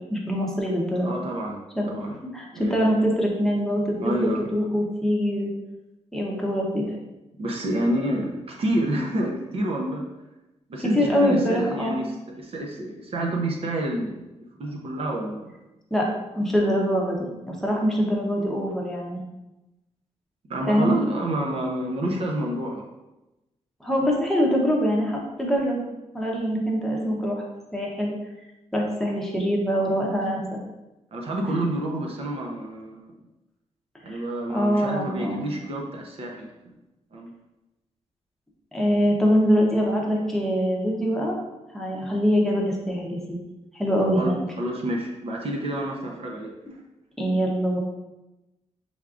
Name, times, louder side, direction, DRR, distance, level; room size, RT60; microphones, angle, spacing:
voice 1, 0.1-1.1 1.8-1.9 2.3-5.5 6.1-6.9 10.8-12.0 15.9-16.1 16.3-19.2 20.7-20.9 23.8-25.8 26.1-27.4 27.7-28.1 28.7-30.4 34.1-34.2 34.5-35.4 38.7-41.4 41.7-43.2 43.7-44.4 47.2-47.8, equal, 5° left, -3 dB, 0.8 m, -23 dB
voice 2, 1.0-1.6 1.9-2.2 2.5-2.8 4.0-4.5 7.4-10.0 10.7-12.0 12.4-14.3 14.6-15.5 20.5-22.9 31.1-33.1 34.0-36.7 37.1-37.3 44.1-46.5, right 1 dB, 50° right, 0 dB, 0.7 m, -28 dB
6.2 x 3.4 x 2.4 m, 0.99 s
wide cardioid pair, 155°, 12 cm